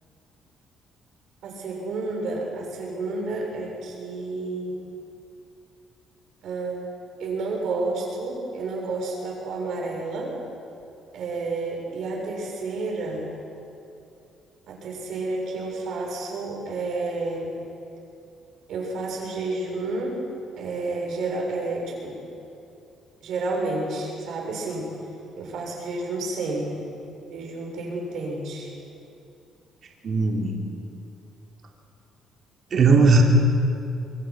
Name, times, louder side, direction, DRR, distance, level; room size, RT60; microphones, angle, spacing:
voice 1, 1.4-4.8 6.4-6.9 7.2-10.3 11.1-13.3 14.7-17.5 18.7-20.2 20.6-22.1 23.2-24.9 25.4-26.9 27.2-28.7, right 3 dB, 65° right, -1 dB, 6.9 m, -30 dB
voice 2, 30.0-30.6 32.7-33.2, right 4 dB, 45° right, 0 dB, 3.1 m, -17 dB
25.0 x 24.0 x 6.3 m, 2.7 s
cardioid pair, 145°, 0 cm